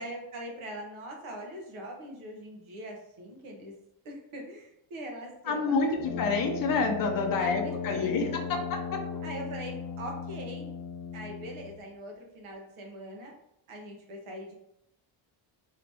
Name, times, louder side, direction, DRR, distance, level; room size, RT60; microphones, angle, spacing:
voice 1, 0.0-3.7 4.0-6.0 7.4-8.7 9.2-10.7 11.1-13.3 13.7-14.5, right 1 dB, 75° right, 1 dB, 1.0 m, -42 dB
voice 2, 5.5-8.6 8.9-9.0, left 4 dB, 45° left, 3 dB, 0.7 m, -28 dB
Brass instrument, 6.0-11.9, left 6 dB, 80° left, 0.6 m, -36 dB
3.0 x 2.8 x 3.3 m, 0.79 s
cardioid pair, 115°, 49 cm